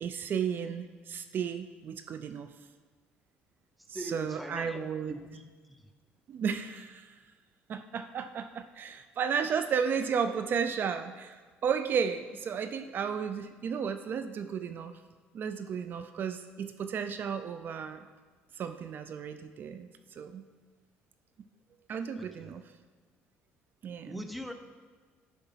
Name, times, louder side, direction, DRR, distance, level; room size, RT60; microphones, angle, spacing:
voice 1, 0.0-2.5 4.0-5.2 6.3-7.1 7.7-11.4 11.6-14.9 15.3-18.1 18.6-19.9 20.2-20.4 21.9-22.6 23.8-24.2, right 7 dB, 50° right, 9 dB, 0.5 m, -33 dB
voice 2, 3.9-5.9 22.2-22.5 24.1-24.5, equal, ahead, 7 dB, 0.7 m, -43 dB
11.0 x 4.5 x 5.7 m, 1.5 s
cardioid pair, 100°, 4 cm